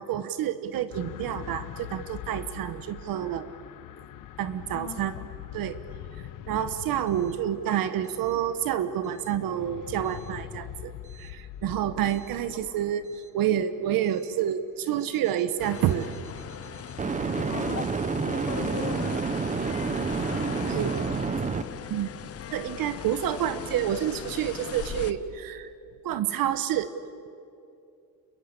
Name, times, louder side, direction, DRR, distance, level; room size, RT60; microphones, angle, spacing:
voice 1, 0.0-3.5 4.4-5.2 5.5-5.8 6.2-16.1 20.7-21.0 21.9-22.1 22.5-25.7 26.0-26.9, right 10 dB, 65° right, 12 dB, 1.2 m, -29 dB
sound 1, 0.9-15.2 16.0-16.1, left 11 dB, 55° left, 1.1 m, -43 dB
voice 2, 4.7-5.3 12.6-12.8 17.5-19.2, left 10 dB, 75° left, 7 dB, 1.3 m, -39 dB
sound 2, 12.1-12.3 17.0-21.6, right 5 dB, 20° right, 0.9 m, -29 dB
sound 3, 15.6-25.1, left 9 dB, 40° left, 1.0 m, -38 dB
29.0 x 22.0 x 8.3 m, 2.6 s
cardioid pair, 165°, 37 cm